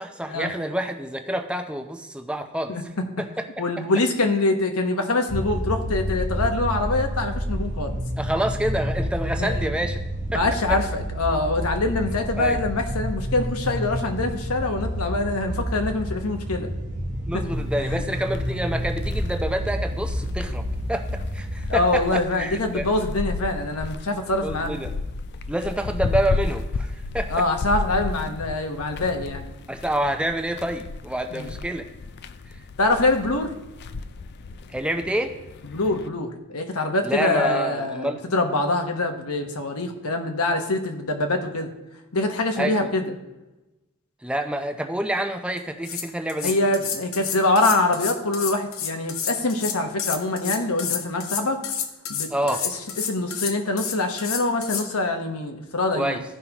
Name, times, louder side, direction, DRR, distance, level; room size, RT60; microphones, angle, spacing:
voice 1, 0.0-2.7 3.2-3.5 8.2-10.0 10.3-10.4 10.7-10.8 12.4-12.6 17.3-22.9 24.4-24.9 25.5-27.3 29.7-31.9 34.7-35.3 37.0-38.2 42.6-42.9 44.2-46.5 52.3-52.6 55.9-56.2, right 1 dB, 5° right, 5 dB, 0.6 m, -27 dB
voice 2, 3.6-8.0 9.4-9.7 10.3-16.7 17.8-18.0 21.7-24.7 27.3-29.5 31.3-31.5 32.8-33.5 35.7-41.7 42.1-43.0 46.4-51.6 52.1-52.3 52.6-56.2, left 2 dB, 85° left, 5 dB, 1.1 m, -24 dB
sound 1, 5.3-21.8, equal, 35° right, 0.9 m, -29 dB
sound 2, 17.5-36.1, left 3 dB, 50° left, 0.4 m, -33 dB
sound 3, 45.6-45.7 45.8-54.9, left 8 dB, 65° left, 0.8 m, -30 dB
15.5 x 5.6 x 2.9 m, 1.0 s
head